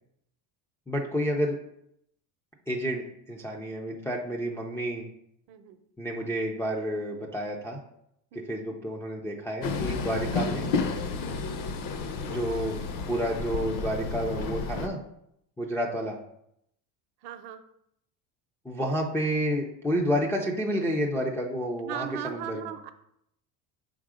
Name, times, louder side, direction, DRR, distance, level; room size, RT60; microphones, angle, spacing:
voice 1, 0.9-1.6 2.7-5.0 6.0-7.8 8.3-10.7 12.3-12.8 13.1-15.0 15.6-16.2 18.7-22.7, equal, 5° left, -2 dB, 0.3 m, -30 dB
voice 2, 5.5-5.8 8.3-8.6 17.2-17.6 21.8-22.9, right 10 dB, 55° right, 9 dB, 0.7 m, -38 dB
Train, 9.6-14.9, left 4 dB, 45° left, 0.7 m, -31 dB
5.6 x 3.7 x 4.8 m, 0.75 s
cardioid pair, 130°, 46 cm